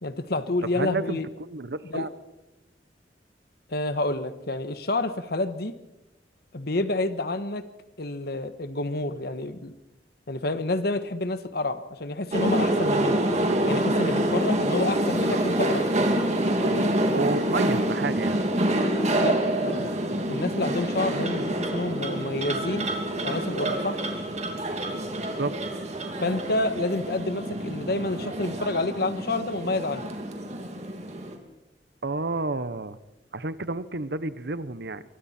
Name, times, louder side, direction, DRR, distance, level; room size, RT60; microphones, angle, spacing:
voice 1, 0.0-1.3 1.8-2.1 3.7-5.7 6.5-7.6 8.0-9.7 10.3-13.2 13.6-15.9 16.6-16.9 19.2-19.9 20.3-22.9 23.2-24.0 26.2-30.1, left 2 dB, 60° left, 11 dB, 1.4 m, -29 dB
voice 2, 0.7-2.1 17.1-18.4 25.1-25.5 32.0-33.0 33.3-35.0, right 3 dB, 65° right, 14 dB, 1.1 m, -30 dB
sound 1, 12.3-31.4, right 1 dB, 40° right, 2.8 m, -26 dB
25.5 x 23.0 x 4.5 m, 0.95 s
head